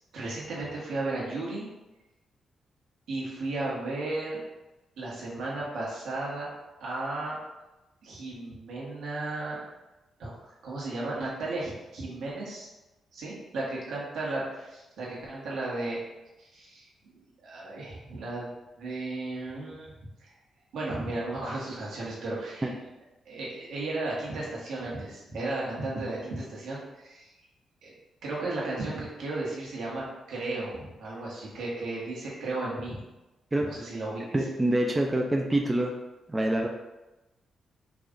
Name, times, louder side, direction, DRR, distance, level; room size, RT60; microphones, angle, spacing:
voice 1, 0.1-1.7 3.1-4.4 5.0-6.5 6.8-7.4 8.0-9.6 10.2-12.7 13.1-16.0 16.4-16.9 17.4-18.5 18.8-19.9 20.2-20.3 20.7-22.7 23.2-27.3 27.8-27.9 28.2-33.0 33.6-34.4, right 2 dB, 85° right, -5 dB, 1.5 m, -34 dB
voice 2, 34.3-35.9 36.3-36.7, right 1 dB, 15° right, 1 dB, 0.4 m, -25 dB
5.0 x 2.5 x 3.8 m, 1.0 s
wide cardioid pair, 145°, 0 cm